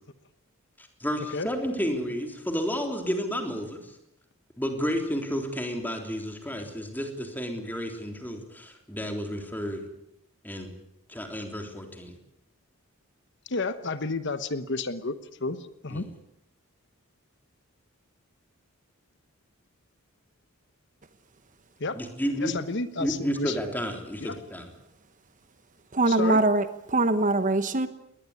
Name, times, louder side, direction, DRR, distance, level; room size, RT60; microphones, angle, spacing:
voice 1, 0.8-3.9 4.6-9.8 10.4-10.7 11.1-12.1 15.9-16.1 21.9-22.5 23.0-24.7, equal, 10° left, 4 dB, 3.6 m, -31 dB
voice 2, 13.5-16.1 21.8-22.0 22.4-23.6 24.2-24.4 26.1-26.4, left 3 dB, 55° left, 12 dB, 1.1 m, -31 dB
voice 3, 25.9-27.9, right 2 dB, 35° right, 11 dB, 1.1 m, -23 dB
21.0 x 19.5 x 9.8 m, 0.82 s
head